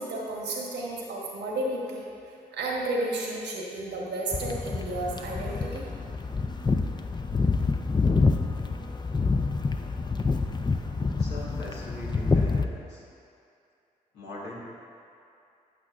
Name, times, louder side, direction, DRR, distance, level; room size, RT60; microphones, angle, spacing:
voice 1, 0.0-2.0 2.5-5.9, right 2 dB, 75° right, -2 dB, 1.3 m, -32 dB
sound 1, 4.3-12.6, left 4 dB, 25° left, 0.6 m, -27 dB
voice 2, 11.2-13.0 14.1-14.6, left 1 dB, 80° left, -5 dB, 1.5 m, -41 dB
8.3 x 8.2 x 2.5 m, 2.6 s
hypercardioid pair, 40°, 18 cm